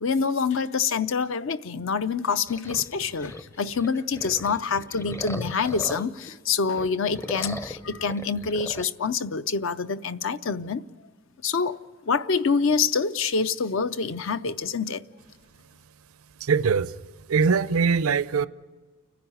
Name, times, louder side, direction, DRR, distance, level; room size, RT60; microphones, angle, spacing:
voice 1, 0.0-10.8 11.4-11.8 12.1-15.0, left 5 dB, 65° left, 0.6 m, -26 dB
sound 1, 2.5-6.3 6.7-8.9, left 1 dB, 10° left, 0.5 m, -39 dB
voice 2, 16.4-16.9 17.3-18.5, right 5 dB, 80° right, 0.5 m, -22 dB
29.5 x 10.5 x 9.5 m
head